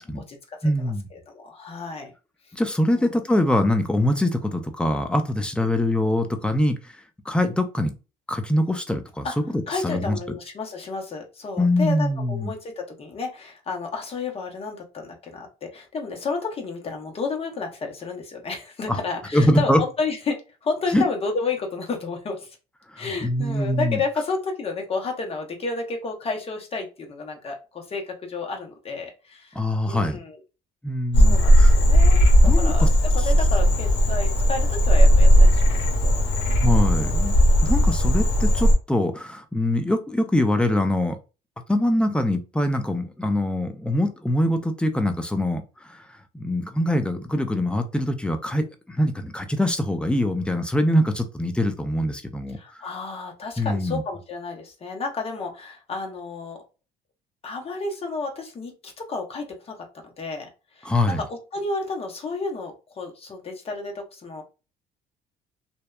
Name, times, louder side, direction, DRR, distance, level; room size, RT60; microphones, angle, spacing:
voice 1, 0.0-2.1 2.9-3.0 5.6-5.7 9.2-9.3 9.7-22.6 23.0-30.4 31.2-32.8 33.1-36.2 36.9-37.1 52.6-56.6 57.4-59.8 60.0-60.9 61.2-64.4, left 4 dB, 35° left, 0.7 m, -31 dB
voice 2, 0.6-1.1 2.5-6.9 7.3-7.9 8.3-10.2 11.6-12.5 18.9-19.0 19.3-19.8 20.9-21.0 22.9-24.0 29.5-30.2 30.8-31.7 32.4-32.9 33.2-33.3 36.6-37.3 37.6-41.2 41.7-46.1 46.3-52.9 53.6-54.0 60.8-61.2, left 1 dB, 5° left, 0.4 m, -23 dB
Frog, 31.1-38.7, equal, 85° left, 0.7 m, -17 dB
2.6 x 2.2 x 2.3 m
cardioid pair, 110°, 17 cm